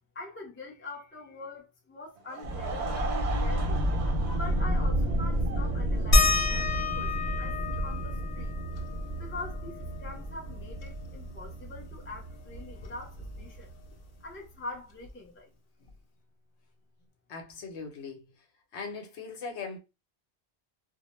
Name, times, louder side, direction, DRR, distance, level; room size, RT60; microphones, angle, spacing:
voice 1, 0.1-3.9 4.3-8.6 9.2-13.7 14.2-15.5, left 2 dB, 15° left, 0.4 m, -43 dB
Laughter / Crowd, 2.2-6.7, right 5 dB, 90° right, 0.9 m, -39 dB
sound 1, 2.4-13.9, right 1 dB, 35° right, 0.5 m, -31 dB
sound 2, 6.1-11.3 11.6-11.7 12.0-13.8 15.1-15.2 15.9-16.0, left 2 dB, 60° left, 0.6 m, -30 dB
voice 2, 17.3-18.5 18.7-19.8, left 4 dB, 85° left, 1.0 m, -40 dB
2.1 x 2.0 x 3.0 m
omnidirectional pair, 1.1 m